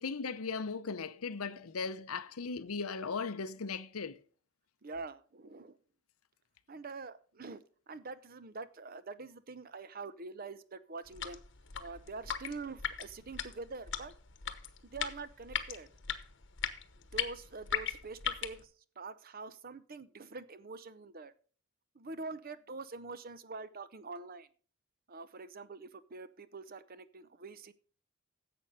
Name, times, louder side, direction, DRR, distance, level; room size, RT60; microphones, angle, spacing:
voice 1, 0.0-4.2, left 4 dB, 90° left, 0.7 m, -37 dB
voice 2, 4.8-5.8 6.7-11.4 11.8-14.1 14.8-15.9 16.9-21.3 21.9-24.5 25.1-27.7, right 3 dB, 45° right, 0.7 m, -45 dB
sound 1, 11.1-18.6, left 8 dB, 60° left, 1.1 m, -39 dB
11.0 x 7.8 x 5.4 m
head